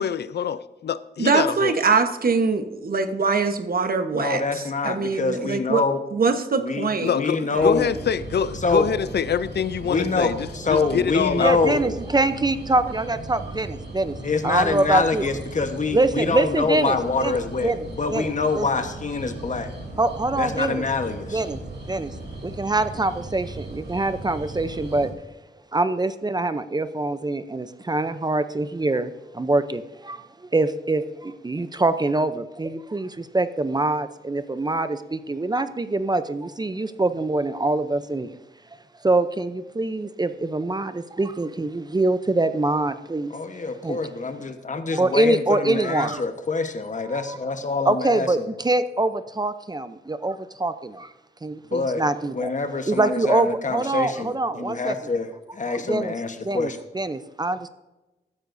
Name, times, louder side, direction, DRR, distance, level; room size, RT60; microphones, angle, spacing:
voice 1, 0.0-1.7 7.0-11.6, left 8 dB, 70° left, 15 dB, 0.5 m, -25 dB
voice 2, 1.2-5.8 6.1-7.1 7.5-7.7, right 4 dB, 55° right, 8 dB, 1.1 m, -23 dB
voice 3, 4.1-6.0 6.6-7.9 8.6-8.9 9.8-11.8 14.2-19.7 20.4-21.4 43.3-48.5 51.7-52.0 52.3-56.8, left 4 dB, 45° left, 8 dB, 1.2 m, -25 dB
sound 1, 7.5-25.1, right 2 dB, 70° right, 3.1 m, -37 dB
voice 4, 11.4-14.2 14.4-15.2 15.9-17.8 18.1-18.7 20.0-20.8 21.3-21.6 21.9-22.1 22.4-25.1 25.7-38.4 39.0-43.3 43.8-44.0 44.9-46.2 47.1-47.4 47.9-51.1 51.4-52.5 52.9-55.0 55.9-56.1 56.4-57.7, right 2 dB, 25° right, 12 dB, 0.6 m, -24 dB
15.0 x 13.0 x 2.7 m, 1.1 s
wide cardioid pair, 105°, 18 cm